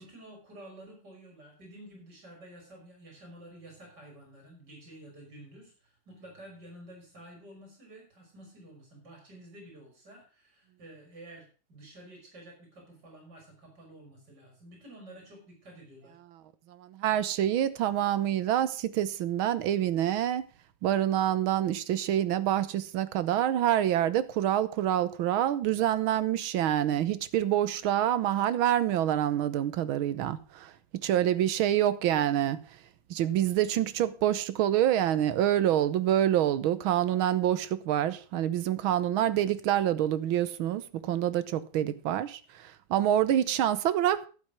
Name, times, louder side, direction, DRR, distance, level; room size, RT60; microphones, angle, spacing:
voice 1, 0.0-16.2, right 1 dB, 55° right, 4.9 m, -50 dB
voice 2, 16.7-20.4 20.8-30.7 31.0-32.6 33.1-44.3, right 11 dB, 90° right, 1.7 m, -27 dB
12.0 x 7.9 x 6.1 m
omnidirectional pair, 2.2 m